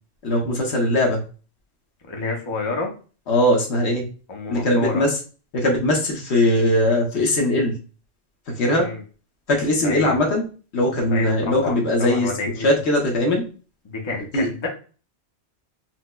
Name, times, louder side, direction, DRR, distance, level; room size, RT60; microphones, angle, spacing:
voice 1, 0.2-1.2 3.3-4.1 4.5-5.2 5.5-7.7 8.5-8.9 9.5-10.4 10.7-12.3 12.6-13.4 14.3-14.5, left 1 dB, 70° left, 0 dB, 1.1 m, -20 dB
voice 2, 2.1-2.9 4.3-5.0 8.8-9.0 9.8-10.2 11.1-11.7 12.0-12.7 14.0-14.7, left 3 dB, 30° left, 1 dB, 0.6 m, -28 dB
4.4 x 2.1 x 2.2 m, 0.36 s
omnidirectional pair, 1.1 m